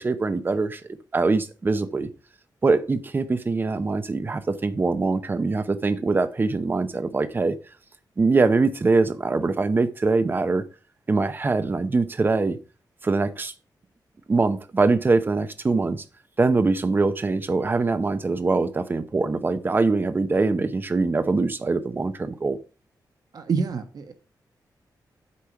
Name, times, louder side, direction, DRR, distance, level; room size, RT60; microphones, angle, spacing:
voice 1, 0.0-2.1 2.6-7.5 8.2-10.6 11.1-12.6 13.0-13.5 14.3-16.0 16.4-22.6, right 3 dB, 25° right, 0.8 m, -23 dB
voice 2, 23.3-24.1, right 5 dB, 60° right, 1.3 m, -27 dB
8.5 x 4.9 x 5.8 m
wide cardioid pair, 145°, 8 cm